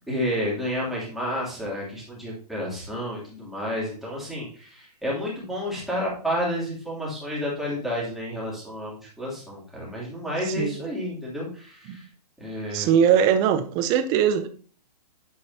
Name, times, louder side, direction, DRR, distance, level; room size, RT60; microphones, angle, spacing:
voice 1, 0.1-12.1 12.4-12.9, equal, ahead, 2.9 m, -30 dB
voice 2, 12.7-14.5, right 8 dB, 20° right, 0.5 m, -21 dB
8.8 x 7.7 x 2.8 m
hypercardioid pair, 155°, 21 cm